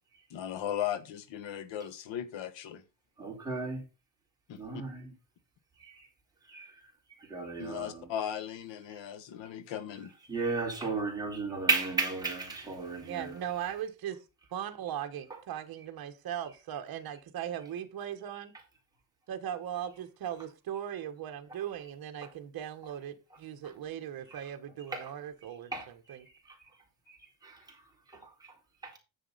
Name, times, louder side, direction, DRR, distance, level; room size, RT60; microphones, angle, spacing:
voice 1, 0.3-2.8 4.5-4.8 7.6-10.1, left 10 dB, 75° left, 1.5 m, -37 dB
voice 2, 3.2-3.8 4.6-5.1 5.8-6.1 6.4-8.1 10.3-13.4 15.3-15.4 22.2-22.3 23.6-23.7 24.3-24.4 24.9-25.1 25.7-26.7 27.1-29.0, right 4 dB, 10° right, 3.9 m, -35 dB
voice 3, 13.0-14.2 14.5-18.5 19.3-25.7 26.1-26.2, right 10 dB, 50° right, 1.3 m, -38 dB
9.9 x 7.4 x 4.0 m
cardioid pair, 150°, 46 cm